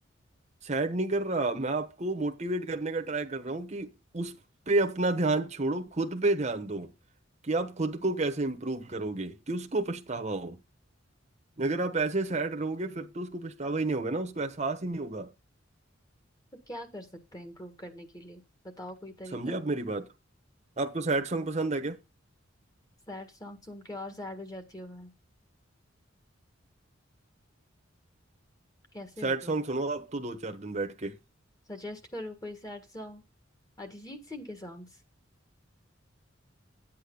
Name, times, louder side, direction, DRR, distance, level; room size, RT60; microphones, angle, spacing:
voice 1, 0.6-4.4 4.7-6.9 7.4-10.6 11.6-15.3 19.3-20.1 20.8-22.0 29.2-31.2, right 2 dB, 35° right, 1.0 m, -30 dB
voice 2, 16.7-19.6 23.1-25.1 28.9-29.6 31.7-33.2 33.8-35.0, left 1 dB, 20° left, 1.7 m, -42 dB
9.0 x 8.6 x 3.9 m
head